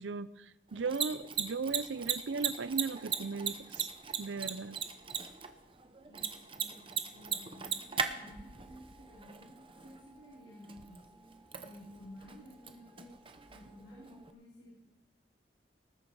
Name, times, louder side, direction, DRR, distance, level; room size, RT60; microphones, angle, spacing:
voice 1, 0.0-3.9 4.2-4.8, right 4 dB, 80° right, 16 dB, 0.6 m, -37 dB
Mechanisms, 0.7-14.3, right 7 dB, 30° right, 0.8 m, -40 dB
voice 2, 6.0-11.1 11.6-13.1 13.4-14.8, left 1 dB, 70° left, -6 dB, 4.9 m, -54 dB
19.5 x 9.6 x 4.8 m, 0.96 s
head